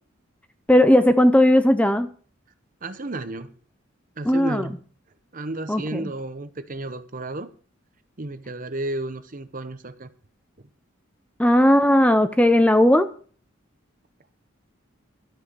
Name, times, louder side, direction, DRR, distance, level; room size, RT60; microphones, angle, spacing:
voice 1, 0.7-2.1 4.2-4.7 5.7-6.1 11.4-13.1, left 1 dB, 5° left, 0.6 m, -17 dB
voice 2, 2.8-3.6 4.2-4.8 5.3-7.5 8.2-10.1 10.6-10.7, right 2 dB, 40° right, 1.0 m, -32 dB
12.0 x 8.4 x 6.8 m
head